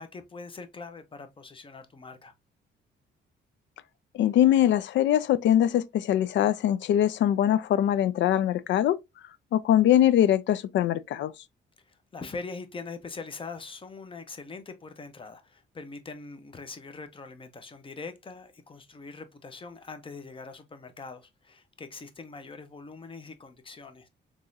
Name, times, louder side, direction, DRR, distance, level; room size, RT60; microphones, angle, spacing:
voice 1, 0.0-2.3 11.9-24.1, left 4 dB, 25° left, 0.7 m, -42 dB
voice 2, 4.1-9.0 9.5-11.3, left 11 dB, 70° left, 0.4 m, -22 dB
3.6 x 3.0 x 2.6 m
cardioid pair, 90°, 20 cm